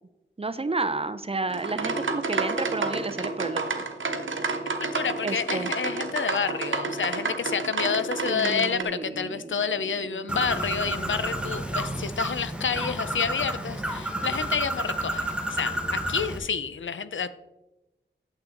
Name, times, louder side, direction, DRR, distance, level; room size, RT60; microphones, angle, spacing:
voice 1, 0.4-3.8 5.2-5.7 8.3-9.6 10.0-10.2, right 3 dB, 30° right, 12 dB, 0.5 m, -31 dB
sound 1, 1.5-8.8, right 3 dB, 90° right, 0.9 m, -30 dB
voice 2, 4.8-17.3, left 6 dB, 80° left, 13 dB, 0.5 m, -29 dB
Bird, 10.3-16.4, right 1 dB, 5° right, 1.1 m, -30 dB
8.8 x 7.5 x 3.8 m, 1.0 s
wide cardioid pair, 80°, 20 cm